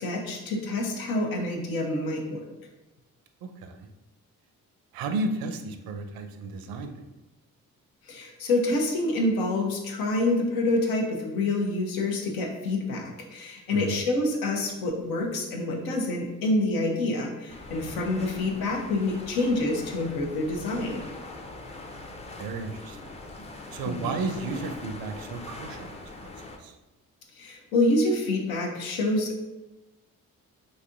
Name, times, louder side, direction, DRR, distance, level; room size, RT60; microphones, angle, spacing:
voice 1, 0.0-2.4 8.1-21.0 23.8-24.1 27.3-29.4, left 2 dB, 85° left, 1 dB, 0.7 m, -27 dB
voice 2, 3.4-3.9 4.9-7.0 13.7-14.0 17.8-18.0 22.4-23.1 23.7-26.3 26.6-26.8, right 3 dB, 75° right, 7 dB, 0.5 m, -33 dB
sound 1, 17.5-26.6, left 2 dB, 20° left, 0.5 m, -42 dB
4.1 x 2.6 x 2.5 m, 1.0 s
supercardioid pair, 55°, 36 cm